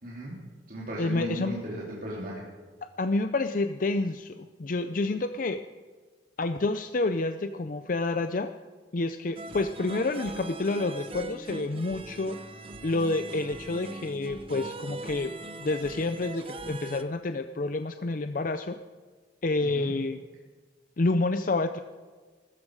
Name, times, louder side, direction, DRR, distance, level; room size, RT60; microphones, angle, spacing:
voice 1, 0.0-0.4 0.7-2.4 19.6-19.9, equal, 45° right, -6 dB, 3.3 m, -36 dB
voice 2, 1.0-1.6 3.0-5.6 6.4-8.5 8.9-12.4 12.8-15.3 15.6-18.8 19.4-20.2 21.0-21.8, left 2 dB, 45° left, 9 dB, 0.5 m, -29 dB
sound 1, 9.4-17.0, right 2 dB, 30° right, 0.8 m, -41 dB
20.5 x 13.5 x 4.9 m, 1.4 s
head